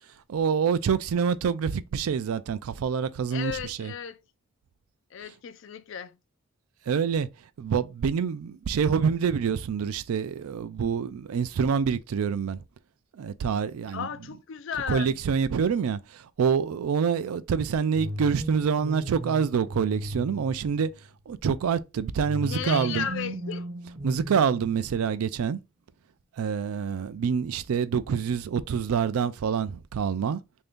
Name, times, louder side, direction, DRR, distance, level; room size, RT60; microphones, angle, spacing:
voice 1, 0.3-3.9 6.9-7.3 7.6-12.6 13.2-14.1 14.9-20.9 21.3-23.1 24.0-25.6 26.4-30.4, right 6 dB, 85° right, 0.4 m, -26 dB
voice 2, 3.3-4.2 5.1-6.1 13.9-15.2 22.4-23.7, left 8 dB, 60° left, 0.4 m, -34 dB
sound 1, 17.9-21.1 22.2-25.2, equal, 45° right, 0.8 m, -36 dB
3.3 x 2.6 x 3.5 m
head